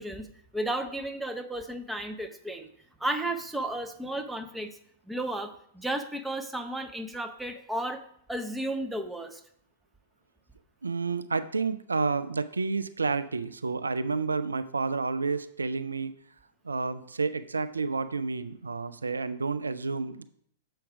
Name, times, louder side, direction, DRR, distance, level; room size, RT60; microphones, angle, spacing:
voice 1, 0.0-2.7 3.0-4.8 5.1-8.0 8.3-9.4, right 1 dB, 5° right, 7 dB, 0.7 m, -33 dB
voice 2, 10.8-16.1 16.6-20.2, right 4 dB, 85° right, 13 dB, 0.3 m, -30 dB
7.1 x 4.5 x 4.8 m, 0.68 s
figure-of-eight pair, 105°, 0 cm